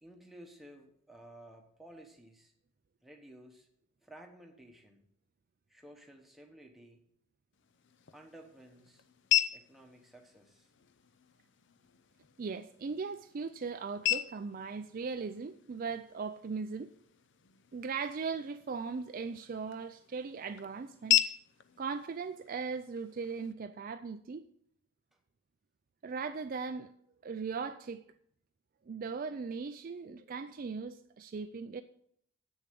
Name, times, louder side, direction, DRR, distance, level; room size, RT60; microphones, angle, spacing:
voice 1, 0.0-2.5 3.0-3.7 4.0-5.0 5.7-7.0 8.1-9.0 9.5-10.7 25.1-25.2, right 1 dB, ahead, 1.1 m, -54 dB
sound 1, 7.5-23.5, left 11 dB, 55° left, 0.5 m, -37 dB
voice 2, 12.4-16.9 17.7-21.3 21.8-24.5 26.0-26.9 27.2-28.0 28.9-31.8, right 5 dB, 40° right, 0.3 m, -38 dB
8.1 x 6.8 x 7.5 m
head